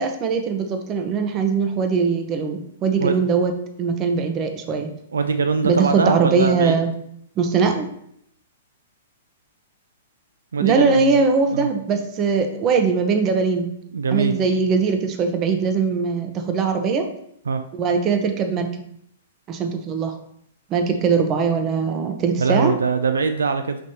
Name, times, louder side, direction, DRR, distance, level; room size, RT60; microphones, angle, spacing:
voice 1, 0.0-3.5 3.8-4.9 5.6-6.9 7.4-7.9 10.6-13.7 14.1-17.1 17.7-18.7 19.5-20.1 20.7-22.7, right 5 dB, 30° right, 6 dB, 0.6 m, -21 dB
voice 2, 5.1-6.8 10.5-11.2 11.5-11.7 13.9-14.3 17.5-17.6 22.4-23.8, right 5 dB, 85° right, 8 dB, 0.3 m, -22 dB
5.1 x 3.1 x 2.7 m, 0.71 s
hypercardioid pair, 120°, 0 cm